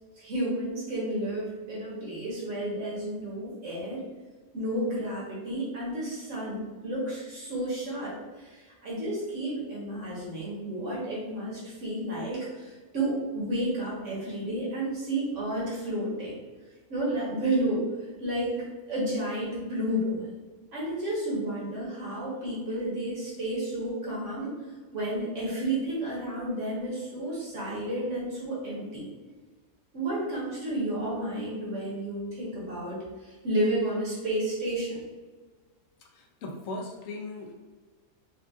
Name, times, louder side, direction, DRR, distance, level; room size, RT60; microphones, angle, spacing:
voice 1, 0.2-4.0 4.5-8.1 8.4-8.6 8.8-16.3 16.9-17.8 18.2-18.5 18.9-20.3 20.7-24.5 24.9-29.0 29.9-33.0 33.4-35.0, right 1 dB, 60° right, -6 dB, 1.5 m, -31 dB
voice 2, 36.0-37.5, left 2 dB, 70° left, 2 dB, 1.0 m, -38 dB
4.5 x 2.4 x 2.4 m, 1.4 s
omnidirectional pair, 1.5 m